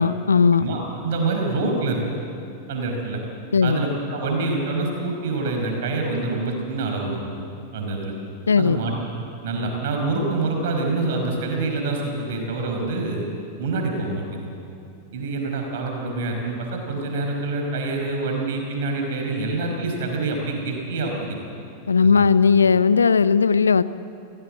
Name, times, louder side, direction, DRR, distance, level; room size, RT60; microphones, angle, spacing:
voice 1, 0.0-0.6 3.5-3.8 8.5-8.8 21.9-23.8, left 5 dB, 75° left, 16 dB, 0.6 m, -17 dB
voice 2, 0.6-2.0 2.7-3.2 3.6-7.2 7.7-8.1 8.6-8.9 9.4-13.2 13.6-14.4 15.1-21.4 22.0-22.2, right 3 dB, 55° right, 2 dB, 4.9 m, -26 dB
28.0 x 17.5 x 7.8 m, 2.7 s
figure-of-eight pair, 90°, 0 cm